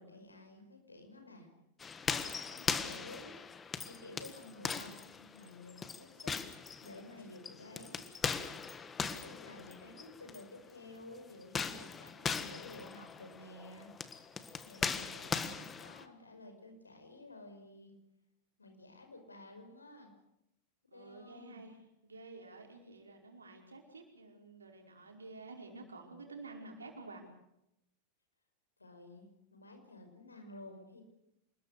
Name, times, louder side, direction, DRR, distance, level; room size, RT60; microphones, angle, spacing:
voice 1, 0.0-1.5 2.1-3.3 3.8-6.4 6.8-8.1 9.0-13.9 14.6-17.9 18.6-20.1 20.9-21.6 28.8-31.0, left 2 dB, 80° left, 5 dB, 5.6 m, -52 dB
sound 1, 1.8-10.4 11.4-16.0, left 5 dB, 20° left, 1.6 m, -39 dB
voice 2, 20.9-27.2, right 3 dB, 75° right, 2 dB, 5.2 m, -51 dB
27.5 x 21.0 x 6.7 m, 0.84 s
figure-of-eight pair, 90°, 0 cm